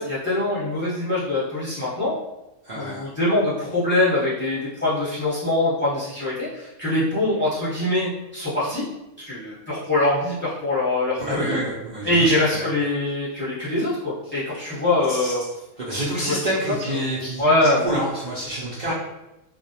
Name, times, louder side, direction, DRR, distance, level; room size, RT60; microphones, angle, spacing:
voice 1, 0.0-2.2 2.7-8.8 9.2-11.6 12.0-15.4 15.9-16.3 16.7-16.8 17.4-17.9 18.9-19.0, left 2 dB, 10° left, -10 dB, 0.8 m, -23 dB
voice 2, 2.6-3.1 11.2-12.6 14.3-14.4 15.1-15.3 15.8-17.4 17.8-18.9, right 1 dB, 85° right, -8 dB, 0.4 m, -28 dB
2.4 x 2.0 x 2.7 m, 0.95 s
omnidirectional pair, 1.5 m